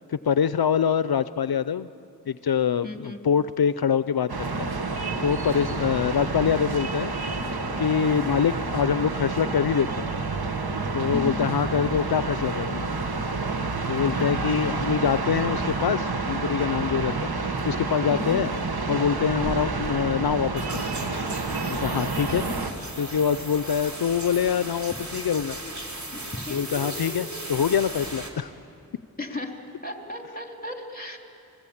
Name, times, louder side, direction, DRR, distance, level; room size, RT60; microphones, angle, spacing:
voice 1, 0.1-1.9 2.3-4.7 5.2-7.1 7.8-10.1 10.9-12.9 13.9-17.3 17.7-18.5 18.9-20.7 21.7-22.4 23.0-25.6 26.5-28.5, left 7 dB, 85° left, 14 dB, 0.5 m, -25 dB
voice 2, 2.8-3.2 11.1-11.4 14.1-14.4 18.1-18.4 25.6-25.7 26.1-26.2 26.5-27.3 29.2-31.2, left 2 dB, 25° left, 3 dB, 3.0 m, -35 dB
sound 1, 4.3-22.7, right 3 dB, 90° right, 1.2 m, -29 dB
sound 2, 20.6-28.3, right 1 dB, 50° right, 3.2 m, -37 dB
30.0 x 21.0 x 8.6 m, 2.7 s
wide cardioid pair, 45°, 36 cm